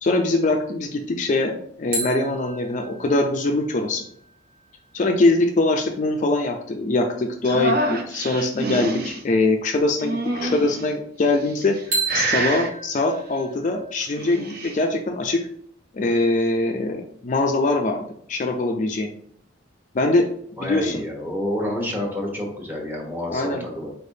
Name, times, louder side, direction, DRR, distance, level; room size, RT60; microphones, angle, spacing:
voice 1, 0.0-4.0 4.9-11.8 12.1-15.4 15.9-18.0 18.3-19.1 19.9-20.3 20.6-21.0 23.3-23.7, left 2 dB, 40° left, 3 dB, 0.4 m, -22 dB
sound 1, 1.9-5.5 11.9-14.6, right 3 dB, 70° right, 1.5 m, -33 dB
sound 2, 7.4-9.2 10.0-10.8 11.5-11.8 12.1-12.7 14.0-14.8, right 1 dB, 50° right, 0.6 m, -26 dB
voice 2, 20.6-23.9, left 1 dB, 10° right, -1 dB, 1.0 m, -28 dB
4.3 x 3.3 x 2.7 m, 0.66 s
head